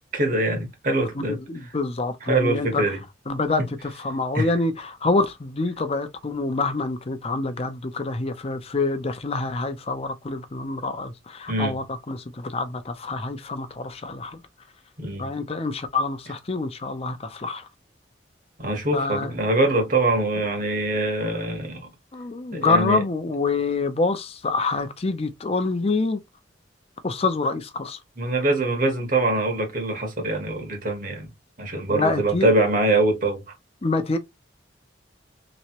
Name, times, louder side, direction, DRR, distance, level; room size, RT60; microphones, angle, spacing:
voice 1, 0.1-1.4 2.2-3.0 3.6-3.7 4.3-4.5 11.5-11.7 15.0-15.3 18.6-21.9 22.5-23.0 28.2-31.3 31.6-33.5, right 2 dB, 50° right, 1.3 m, -23 dB
voice 2, 1.2-2.8 3.3-14.4 15.2-17.7 18.9-19.3 22.1-26.2 27.0-28.0 31.9-32.5 33.8-34.2, left 3 dB, 35° left, 0.6 m, -26 dB
3.4 x 3.1 x 2.9 m
head